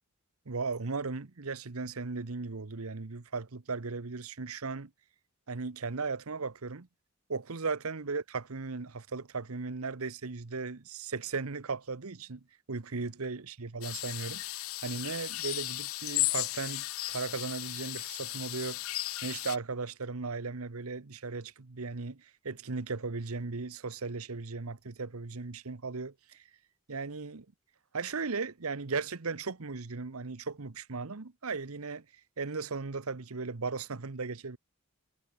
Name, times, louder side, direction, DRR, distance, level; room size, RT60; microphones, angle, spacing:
voice 1, 0.5-4.9 5.5-6.9 7.3-26.4 26.9-27.5 27.9-32.0 32.4-34.6, right 4 dB, 85° right, 1.0 m, -37 dB
sound 1, 13.8-19.6, left 18 dB, 75° left, 0.7 m, -35 dB
head